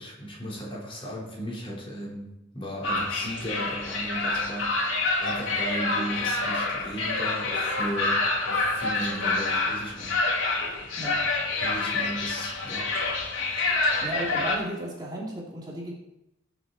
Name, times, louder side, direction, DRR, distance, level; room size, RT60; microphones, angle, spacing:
voice 1, 0.0-10.2 11.6-12.9 14.0-14.1, equal, 30° left, -4 dB, 4.4 m, -36 dB
sound 1, 2.8-14.6, left 3 dB, 80° left, 3.2 m, -27 dB
voice 2, 14.0-15.9, right 1 dB, 20° right, -4 dB, 2.8 m, -34 dB
21.5 x 7.5 x 4.3 m, 0.90 s
head